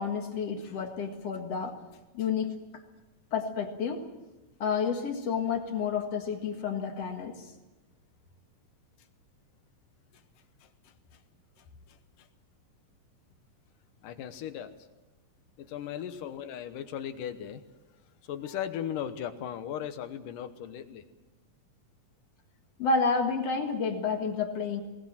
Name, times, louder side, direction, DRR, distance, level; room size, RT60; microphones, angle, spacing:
voice 1, 0.0-1.8 2.1-2.8 3.3-4.1 4.6-7.5 22.8-24.8, left 5 dB, 50° left, 4 dB, 2.5 m, -30 dB
voice 2, 10.6-11.2 11.6-12.3 14.0-14.8 15.6-17.6 18.2-21.0, left 9 dB, 70° left, 10 dB, 2.6 m, -38 dB
20.5 x 19.5 x 7.5 m, 1.1 s
omnidirectional pair, 4.1 m